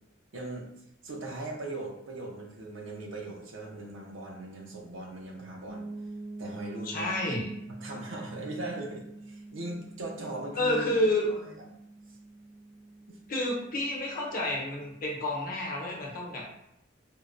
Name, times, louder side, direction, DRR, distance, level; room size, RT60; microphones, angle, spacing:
voice 1, 0.3-0.7 1.0-5.9 6.4-7.1 7.7-11.5 13.1-13.2, right 2 dB, 85° right, 0 dB, 0.7 m, -39 dB
sound 1, 5.7-15.4, right 2 dB, 50° right, 0.4 m, -46 dB
voice 2, 6.8-7.5 10.5-11.3 13.3-16.4, left 1 dB, 45° left, -3 dB, 0.8 m, -29 dB
4.5 x 2.1 x 2.5 m, 0.79 s
head